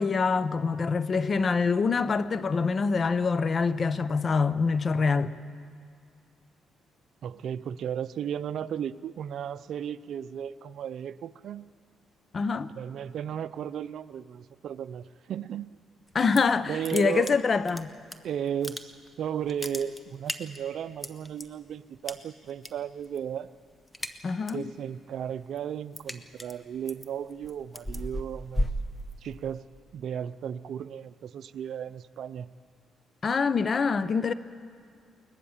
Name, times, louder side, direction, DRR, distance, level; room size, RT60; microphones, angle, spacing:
voice 1, 0.0-5.3 12.3-12.7 16.1-17.9 24.2-24.7 33.2-34.3, left 5 dB, 40° left, 0.7 m, -25 dB
voice 2, 7.2-11.7 12.8-15.7 16.7-17.4 18.2-18.9 19.2-23.5 24.5-28.7 29.2-29.6 29.9-32.5, right 9 dB, 70° right, 0.6 m, -35 dB
sound 1, 16.1-16.6 16.8-18.2 18.5-19.1 19.4-21.4 22.1-22.7 23.0-23.3 23.6-24.7 25.1-29.6, equal, 15° left, 1.3 m, -35 dB
21.0 x 20.0 x 7.3 m
cardioid pair, 90°, 0 cm